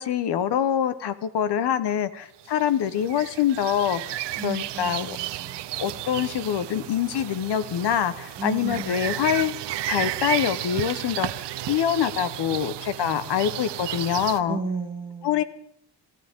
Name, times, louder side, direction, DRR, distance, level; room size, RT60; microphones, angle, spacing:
voice 1, 0.0-5.2 5.8-9.6 9.9-14.6 15.2-15.4, left 9 dB, 65° left, 13 dB, 1.2 m, -25 dB
sound 1, 2.5-14.4, right 14 dB, 70° right, 0.8 m, -33 dB
voice 2, 4.4-5.7 8.4-9.5 13.0-13.5 14.5-15.4, right 4 dB, 10° right, 0 dB, 2.6 m, -35 dB
26.0 x 14.5 x 3.8 m, 0.72 s
cardioid pair, 140°, 43 cm